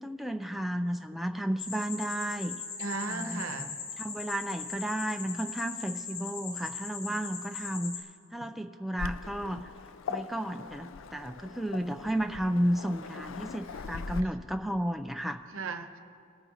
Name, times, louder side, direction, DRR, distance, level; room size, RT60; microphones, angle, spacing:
voice 1, 0.0-2.6 3.1-3.4 4.0-9.7 10.1-15.4, right 1 dB, ahead, 6 dB, 0.3 m, -33 dB
sound 1, 1.6-8.0, left 5 dB, 45° left, 1.6 m, -40 dB
voice 2, 2.8-3.7 12.7-12.8 13.2-13.4 15.5-16.0, right 3 dB, 85° right, 7 dB, 0.9 m, -36 dB
Waves surf, 9.0-14.2, left 5 dB, 75° left, 0.4 m, -41 dB
21.5 x 9.2 x 2.9 m, 2.4 s
head